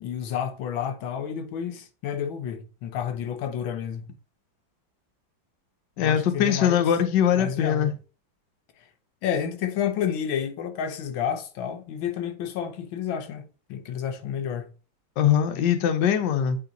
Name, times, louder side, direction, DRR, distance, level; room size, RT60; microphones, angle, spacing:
voice 1, 0.0-4.1 6.0-6.9 7.3-7.9 9.2-13.5 13.7-14.7, left 8 dB, 85° left, 1.6 m, -30 dB
voice 2, 6.0-7.9 15.2-16.6, left 9 dB, 65° left, 1.4 m, -22 dB
8.7 x 3.5 x 4.0 m
omnidirectional pair, 2.1 m